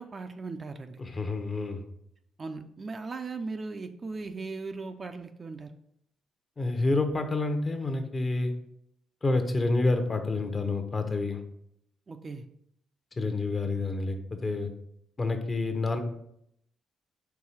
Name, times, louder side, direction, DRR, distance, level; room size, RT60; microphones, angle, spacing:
voice 1, 0.0-1.0 2.4-5.7 12.1-12.4, right 3 dB, 35° right, 7 dB, 0.5 m, -38 dB
voice 2, 1.0-1.8 6.6-8.5 9.2-11.4 13.2-14.7 15.2-16.0, left 2 dB, 30° left, 6 dB, 0.9 m, -28 dB
4.7 x 3.8 x 5.6 m, 0.74 s
cardioid pair, 90°, 0 cm